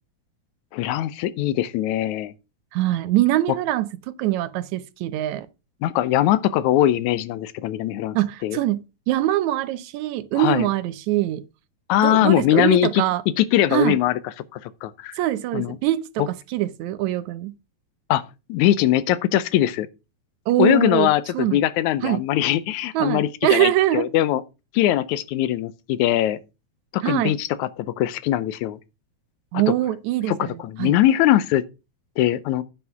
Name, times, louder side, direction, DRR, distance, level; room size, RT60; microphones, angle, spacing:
voice 1, 0.7-2.3 5.8-8.2 8.4-8.6 10.4-10.7 11.9-13.0 13.4-14.2 14.5-15.2 15.5-15.8 18.1-18.2 18.5-19.9 20.6-24.4 24.7-26.4 26.9-28.8 29.7-29.8 30.3-31.6 32.2-32.6, left 13 dB, 80° left, 2.0 m, -21 dB
voice 2, 2.7-5.5 8.2-11.4 12.0-13.2 13.7-14.0 15.2-17.6 20.5-21.6 22.0-22.2 22.9-24.1 27.0-27.4 29.5-31.0, right 14 dB, 80° right, 2.0 m, -23 dB
9.6 x 5.7 x 5.8 m
omnidirectional pair, 3.4 m